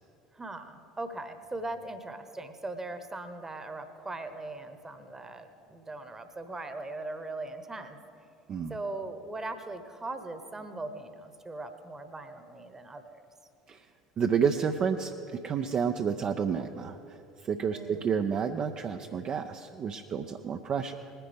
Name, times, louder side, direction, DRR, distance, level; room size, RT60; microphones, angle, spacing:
voice 1, 0.3-8.0 8.7-13.2 17.7-18.1, right 2 dB, 15° right, 9 dB, 1.0 m, -40 dB
voice 2, 14.2-21.0, right 6 dB, 35° right, 5 dB, 0.5 m, -30 dB
20.0 x 10.5 x 3.5 m, 2.7 s
figure-of-eight pair, 65°, 3 cm